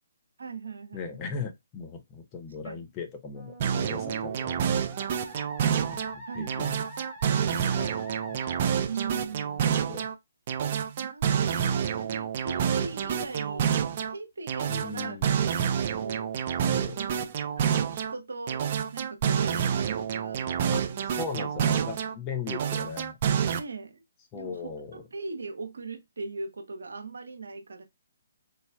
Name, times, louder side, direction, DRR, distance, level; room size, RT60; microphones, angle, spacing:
voice 1, 0.4-1.2 2.6-2.8 6.3-6.7 8.8-9.7 11.0-13.8 14.1-15.7 16.0-16.4 17.0-17.2 17.6-21.1 21.4-21.8 23.5-24.0 24.3-27.8, right 4 dB, 70° right, 0.7 m, -40 dB
voice 2, 0.9-4.9 5.8-6.8 7.5-8.6 9.6-10.1 14.7-15.3 16.7-17.0 20.7-23.2 24.3-25.0, left 5 dB, 25° left, 0.7 m, -39 dB
Musical instrument, 3.3-8.6, right 1 dB, 10° right, 1.3 m, -44 dB
sound 1, 3.6-6.1 6.5-10.1 10.5-14.1 14.5-18.1 18.5-22.1 22.5-23.6, right 8 dB, 40° right, 0.5 m, -28 dB
4.0 x 3.2 x 2.3 m
figure-of-eight pair, 135°, 0 cm